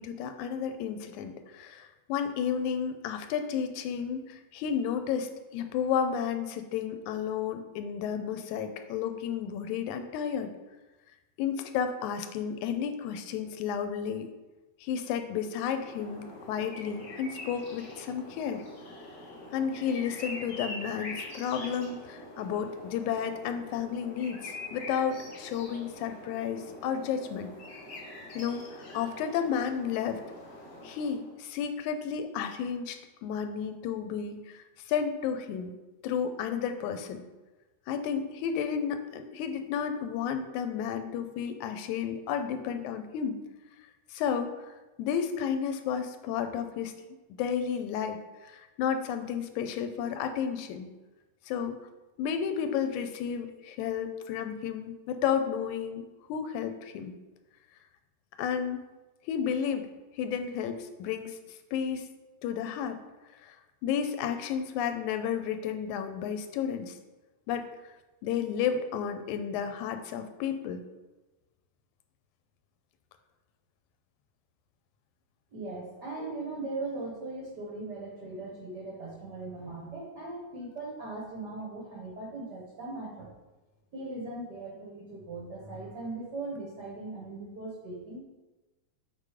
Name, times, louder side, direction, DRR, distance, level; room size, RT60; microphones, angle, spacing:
voice 1, 0.0-10.5 11.4-14.3 14.8-18.6 19.5-27.5 28.4-30.2 30.8-35.7 36.0-37.3 37.9-43.4 44.1-44.5 45.0-46.9 47.3-50.9 51.5-51.8 52.2-57.2 58.4-58.8 59.3-59.9 60.2-61.4 61.7-62.1 62.4-63.0 63.4-63.6 63.8-67.0 67.5-67.7 68.2-70.8, left 7 dB, 85° left, 8 dB, 2.0 m, -32 dB
sound 1, 15.4-31.4, left 2 dB, 50° left, 1.2 m, -44 dB
voice 2, 75.5-83.3 83.9-88.2, right 2 dB, 75° right, -3 dB, 0.9 m, -39 dB
6.8 x 3.8 x 4.9 m, 1.1 s
omnidirectional pair, 3.4 m